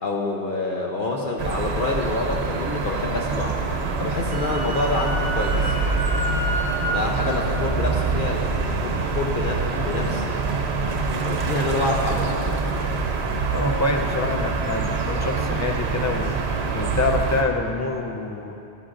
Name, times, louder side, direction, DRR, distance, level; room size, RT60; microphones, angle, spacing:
voice 1, 0.0-3.5 4.0-5.8 6.9-10.4 11.3-12.7, left 2 dB, 55° left, -1 dB, 0.8 m, -27 dB
sound 1, 1.4-17.4, right 4 dB, 70° right, 1.0 m, -25 dB
Wind instrument woodwind instrument, 4.0-7.0, right 1 dB, 35° right, 2.3 m, -30 dB
voice 2, 13.5-16.3 16.7-18.6, left 3 dB, 25° left, 3 dB, 0.3 m, -26 dB
11.5 x 9.7 x 2.5 m, 2.6 s
omnidirectional pair, 1.1 m